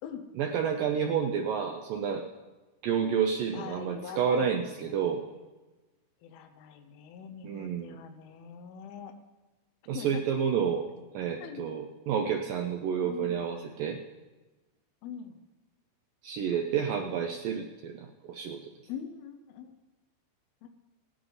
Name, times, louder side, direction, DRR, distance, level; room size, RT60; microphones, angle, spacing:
voice 1, 0.4-2.2 2.8-5.2 7.4-8.0 9.9-10.9 11.1-14.0 16.2-18.6, right 7 dB, 85° right, 3 dB, 1.9 m, -30 dB
voice 2, 3.5-5.4 6.2-9.2 9.9-10.2 11.4-11.7 12.8-13.5 15.0-15.4 16.4-17.4 18.9-19.8 20.6-20.7, left 8 dB, 75° left, 5 dB, 2.6 m, -44 dB
18.0 x 11.5 x 4.0 m, 1.2 s
omnidirectional pair, 5.0 m